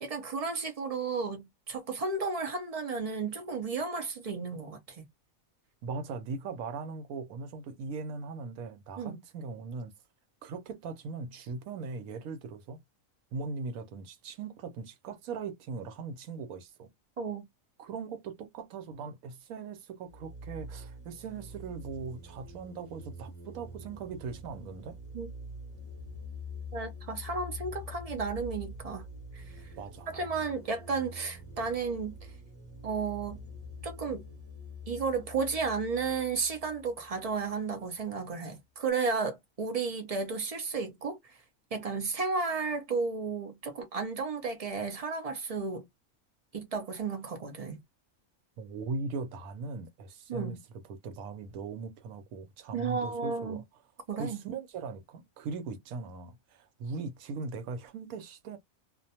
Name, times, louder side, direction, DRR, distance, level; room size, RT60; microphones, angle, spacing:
voice 1, 0.0-5.0 9.0-9.2 17.2-17.5 25.1-25.3 26.7-29.0 29.3-29.7 30.1-32.2 32.8-33.4 33.8-34.2 34.9-41.4 41.7-45.9 46.5-47.8 50.3-50.6 52.7-53.6 54.1-54.4, right 4 dB, 65° right, 0.3 m, -33 dB
voice 2, 5.8-9.9 10.4-12.8 13.3-16.9 17.8-25.0 29.8-30.1 48.6-53.6 54.1-58.6, right 4 dB, 85° right, 1.1 m, -39 dB
sound 1, 20.1-37.5, left 1 dB, 20° left, 0.4 m, -45 dB
2.4 x 2.2 x 2.7 m
omnidirectional pair, 1.4 m